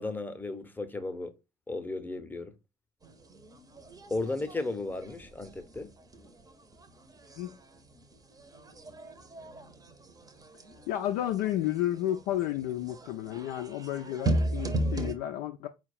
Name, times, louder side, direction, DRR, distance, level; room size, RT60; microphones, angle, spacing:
voice 1, 0.0-1.3 1.7-2.5 4.1-5.9, left 2 dB, 10° left, 0.8 m, -35 dB
sound 1, 3.0-15.1, right 1 dB, 20° right, 0.8 m, -37 dB
voice 2, 10.9-15.7, left 12 dB, 60° left, 0.4 m, -32 dB
4.5 x 2.3 x 4.2 m
figure-of-eight pair, 60°, 19 cm